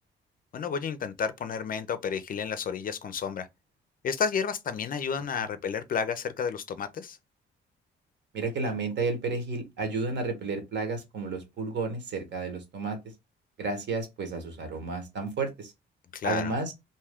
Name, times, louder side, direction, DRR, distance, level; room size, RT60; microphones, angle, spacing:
voice 1, 0.5-3.5 4.0-7.2 16.1-16.5, left 6 dB, 45° left, 0.4 m, -31 dB
voice 2, 8.3-13.0 13.6-15.7 16.2-16.7, right 3 dB, 60° right, 1.1 m, -32 dB
2.7 x 2.2 x 3.4 m
cardioid pair, 90°, 20 cm